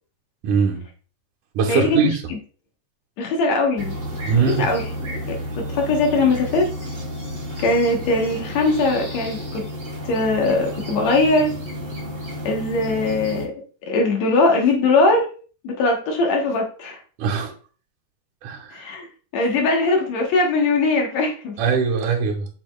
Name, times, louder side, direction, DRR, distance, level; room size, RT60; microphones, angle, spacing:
voice 1, 0.4-0.8 1.5-2.2 4.3-4.7 17.2-17.5 18.4-18.8 21.6-22.5, right 6 dB, 85° right, -2 dB, 2.6 m, -21 dB
voice 2, 1.7-2.4 3.2-3.9 4.4-4.9 5.3-6.7 7.6-9.7 10.0-11.5 12.4-13.5 13.8-15.3 15.6-17.0 18.7-19.1 19.3-21.6, left 3 dB, 70° left, 1 dB, 2.4 m, -20 dB
sound 1, 3.8-13.4, equal, 30° right, 1.7 m, -31 dB
7.0 x 6.0 x 2.3 m, 0.38 s
omnidirectional pair, 3.4 m